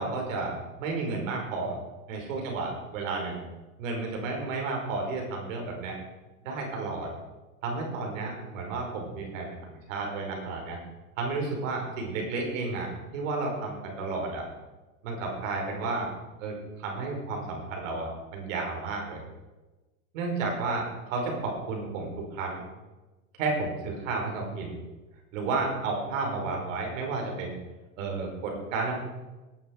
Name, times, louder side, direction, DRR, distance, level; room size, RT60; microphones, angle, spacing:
voice 1, 0.0-1.8 2.1-3.4 3.8-6.0 6.5-7.1 7.6-9.6 9.9-10.8 11.2-14.4 15.0-16.1 16.4-19.2 20.1-22.6 23.4-24.8 25.3-27.6 28.0-28.9, right 3 dB, 70° right, 1 dB, 5.2 m, -32 dB
17.5 x 9.3 x 4.8 m, 1.1 s
supercardioid pair, 125°, 41 cm